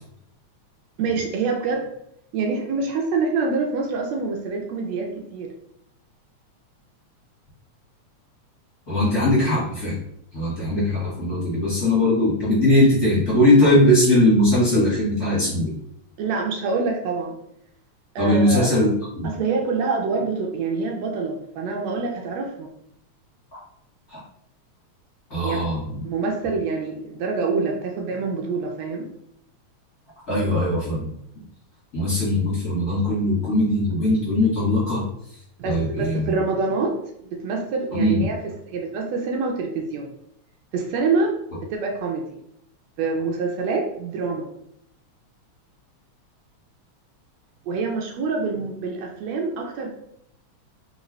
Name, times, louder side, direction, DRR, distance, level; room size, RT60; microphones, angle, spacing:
voice 1, 1.0-1.9 2.3-5.5 16.2-17.4 18.1-18.7 19.2-22.7 25.4-25.6 26.0-29.1 35.6-37.0 37.2-40.1 40.7-41.4 41.7-42.4 43.0-44.5 47.7-49.9, right 4 dB, 75° right, 1 dB, 1.7 m, -26 dB
voice 2, 8.9-10.0 10.3-15.7 18.2-19.3 23.5-23.6 24.1-24.2 25.3-26.0 30.3-31.1 31.9-35.0 35.6-36.3 37.9-38.2, left 1 dB, 35° left, -9 dB, 1.9 m, -20 dB
4.2 x 3.8 x 3.1 m, 0.74 s
omnidirectional pair, 3.4 m